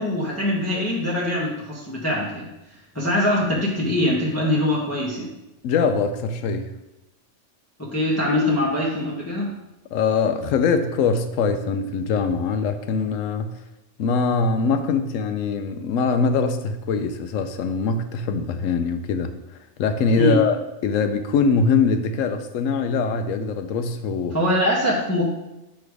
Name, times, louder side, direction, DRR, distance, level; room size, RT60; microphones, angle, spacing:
voice 1, 0.0-2.5 2.9-5.3 7.8-9.5 20.2-20.4 24.3-25.2, left 1 dB, 15° left, -5 dB, 1.0 m, -23 dB
voice 2, 5.6-6.7 9.9-13.6 14.0-19.3 19.8-20.6 20.8-24.4, left 4 dB, 90° left, 8 dB, 1.0 m, -22 dB
8.4 x 3.3 x 4.7 m, 0.96 s
omnidirectional pair, 1.3 m